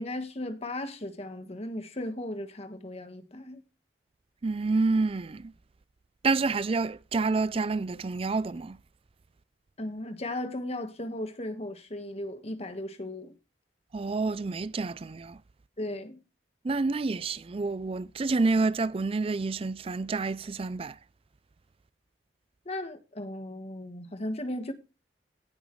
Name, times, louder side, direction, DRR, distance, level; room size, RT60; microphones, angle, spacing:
voice 1, 0.0-3.6 9.8-13.3 15.8-16.2 22.6-24.7, left 1 dB, 35° left, 1.5 m, -36 dB
voice 2, 4.4-5.5 6.2-8.8 13.9-15.4 16.6-21.0, right 3 dB, 30° right, 0.4 m, -28 dB
17.0 x 6.4 x 3.2 m
head